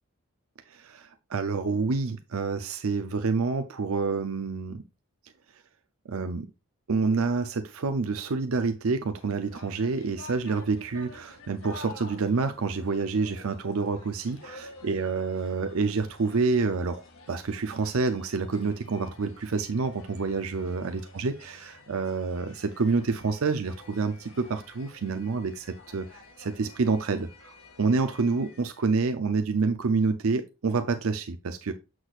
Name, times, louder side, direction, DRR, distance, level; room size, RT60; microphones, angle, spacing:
voice 1, 0.7-4.8 6.1-6.5 6.9-17.0 17.3-31.7, right 4 dB, 85° right, 0.6 m, -28 dB
sound 1, 9.2-29.0, left 3 dB, 80° left, 1.9 m, -50 dB
7.9 x 6.1 x 2.4 m
head